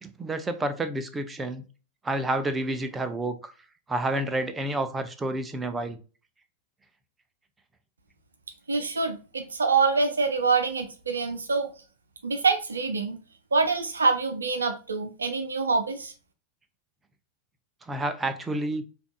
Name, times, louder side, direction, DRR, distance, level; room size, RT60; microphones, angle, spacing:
voice 1, 0.0-1.6 2.0-3.5 3.9-6.0 17.8-18.8, right 1 dB, 15° right, 0.5 m, -29 dB
voice 2, 8.7-11.7 12.2-13.2 13.5-16.1, right 4 dB, 75° right, 0.5 m, -25 dB
5.1 x 2.4 x 2.2 m
figure-of-eight pair, 90°, 0 cm